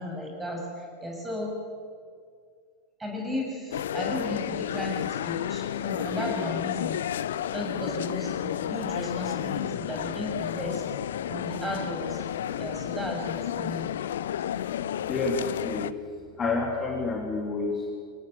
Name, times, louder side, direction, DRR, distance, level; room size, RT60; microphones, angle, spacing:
voice 1, 0.0-1.5 3.0-7.0 7.5-10.8 11.3-12.2 12.6-13.9, left 1 dB, 10° right, 0 dB, 7.2 m, -34 dB
sound 1, 3.7-15.9, left 10 dB, 60° left, 0.6 m, -31 dB
voice 2, 15.1-15.9 16.4-17.9, left 3 dB, 20° left, 0 dB, 3.3 m, -29 dB
24.0 x 18.0 x 9.4 m, 2.1 s
figure-of-eight pair, 90°, 0 cm